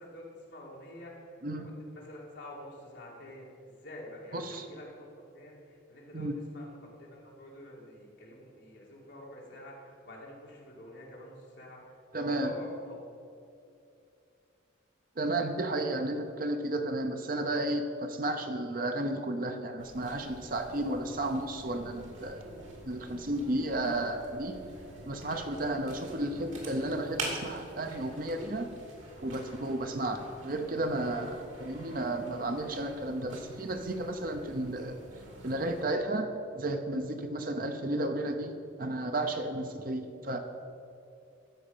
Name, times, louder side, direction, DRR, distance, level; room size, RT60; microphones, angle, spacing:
voice 1, 0.0-5.1 5.3-13.0, left 1 dB, 60° left, -4 dB, 2.7 m, -47 dB
voice 2, 4.3-4.6 6.1-6.4 12.1-12.5 15.2-22.4 22.9-24.5 25.1-28.7 29.2-35.0 35.4-40.4, right 1 dB, 45° right, 6 dB, 0.8 m, -33 dB
sound 1, 19.8-35.8, right 2 dB, 85° right, 2.5 m, -46 dB
13.5 x 4.9 x 7.4 m, 2.6 s
head